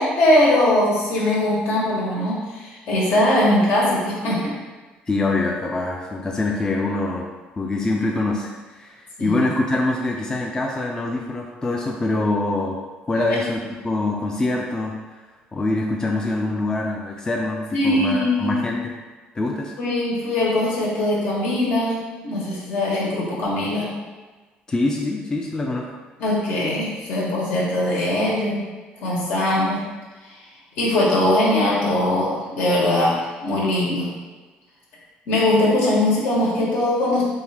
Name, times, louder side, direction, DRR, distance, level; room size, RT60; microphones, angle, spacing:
voice 1, 0.0-4.4 9.2-9.4 13.1-13.4 17.7-18.6 19.8-23.9 26.2-28.7 29.0-29.8 30.8-33.1 33.4-34.1 35.3-37.2, left 1 dB, 70° left, -5 dB, 1.2 m, -21 dB
voice 2, 5.1-7.3 7.6-12.8 13.1-15.2 15.5-18.8 19.4-19.8 24.7-25.9, left 2 dB, 20° left, 0 dB, 0.4 m, -24 dB
3.5 x 2.6 x 3.3 m, 1.3 s
cardioid pair, 110°, 3 cm